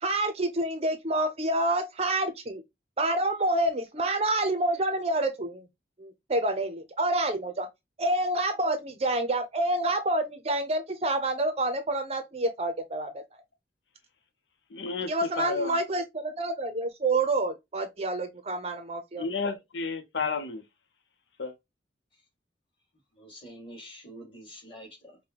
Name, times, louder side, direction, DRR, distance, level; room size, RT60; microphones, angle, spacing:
voice 1, 0.0-2.6 3.0-5.7 6.0-7.7 8.0-13.2 15.1-19.2, right 2 dB, 35° right, 0.6 m, -28 dB
voice 2, 14.7-15.7 19.2-20.6 21.4-21.6, left 4 dB, 80° left, 0.7 m, -32 dB
voice 3, 23.1-25.2, equal, 30° left, 2.3 m, -46 dB
5.2 x 2.2 x 2.9 m
head